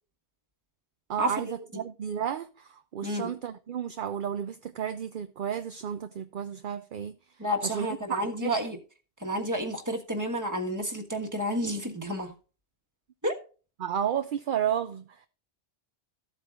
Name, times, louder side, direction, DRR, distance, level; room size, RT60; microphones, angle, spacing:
voice 1, 1.1-7.2 7.6-8.6 13.8-15.0, right 9 dB, 55° right, 0.7 m, -32 dB
voice 2, 3.0-3.3 7.4-8.8 9.2-12.3 13.2-13.3, equal, 15° right, 1.5 m, -30 dB
14.5 x 8.1 x 2.5 m
omnidirectional pair, 1.1 m